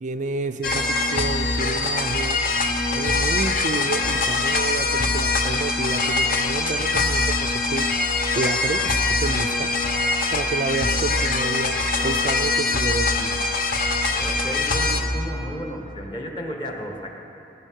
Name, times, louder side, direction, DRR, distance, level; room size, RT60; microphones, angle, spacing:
voice 1, 0.0-2.4 2.9-7.9 8.4-9.7 10.3-13.5, right 3 dB, 40° right, 7 dB, 0.4 m, -30 dB
sound 1, 0.6-15.0, left 3 dB, 50° left, 1.0 m, -23 dB
voice 2, 14.1-17.2, equal, 25° left, 1 dB, 1.6 m, -33 dB
18.5 x 9.6 x 6.4 m, 2.9 s
head